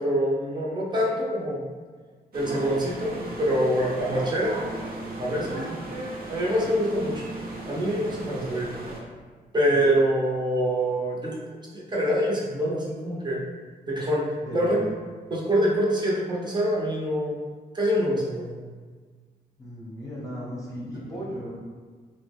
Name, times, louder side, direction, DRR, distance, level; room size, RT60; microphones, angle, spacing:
voice 1, 0.0-1.7 2.3-3.1 3.4-4.5 5.2-5.6 6.3-7.2 7.6-8.7 9.5-11.4 11.7-13.4 13.9-14.2 14.5-14.8 15.3-17.4 17.7-18.6, equal, 25° right, -5 dB, 0.7 m, -25 dB
sound 1, 2.3-9.0, right 2 dB, 65° right, 0.6 m, -36 dB
voice 2, 14.4-14.9 19.6-21.5, equal, 20° left, -7 dB, 0.8 m, -35 dB
3.3 x 2.1 x 3.3 m, 1.5 s
cardioid pair, 105°, 17 cm